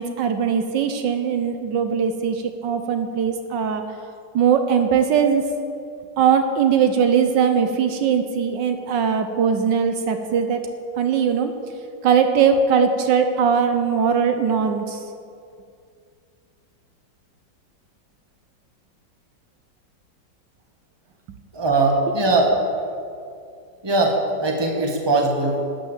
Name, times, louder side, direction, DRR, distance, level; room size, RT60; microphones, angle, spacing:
voice 1, 0.0-3.8 4.3-5.4 6.2-10.6 11.0-11.5 12.0-15.0, right 7 dB, 75° right, 7 dB, 1.4 m, -20 dB
voice 2, 21.5-22.6 23.8-25.6, right 2 dB, 15° right, 0 dB, 1.5 m, -20 dB
12.0 x 9.1 x 7.2 m, 2.4 s
omnidirectional pair, 2.0 m